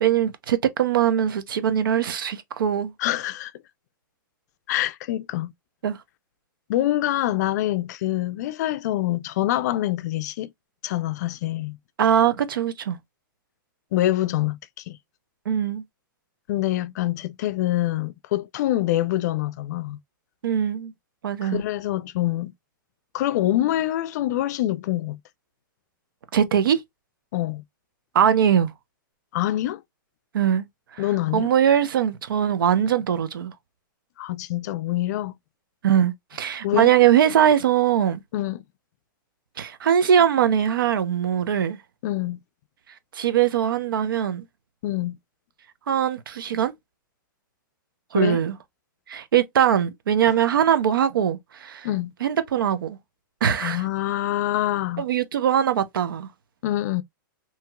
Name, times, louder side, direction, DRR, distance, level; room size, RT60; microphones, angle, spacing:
voice 1, 0.0-2.9 5.8-6.0 12.0-13.0 15.5-15.8 20.4-20.9 21.2-21.6 26.3-26.8 28.1-28.7 30.3-30.7 30.9-31.0 31.3-33.5 35.8-38.2 39.6-41.8 43.1-44.4 45.9-46.7 48.1-48.5 49.1-51.9 52.2-53.0 53.4-53.8 55.0-56.3, right 9 dB, 85° right, 0.7 m, -21 dB
voice 2, 3.0-3.5 4.7-5.5 6.7-10.5 10.8-11.8 13.9-14.6 14.9-15.0 16.5-20.0 21.4-22.5 23.1-25.2 27.3-27.6 29.3-29.8 31.0-31.5 34.2-35.3 36.6-36.9 38.3-38.6 42.0-42.4 44.8-45.2 48.1-48.4 50.3-50.4 51.8-52.1 53.6-55.1 56.6-57.0, left 14 dB, 55° left, 0.3 m, -25 dB
2.9 x 2.8 x 2.2 m
hypercardioid pair, 145°, 11 cm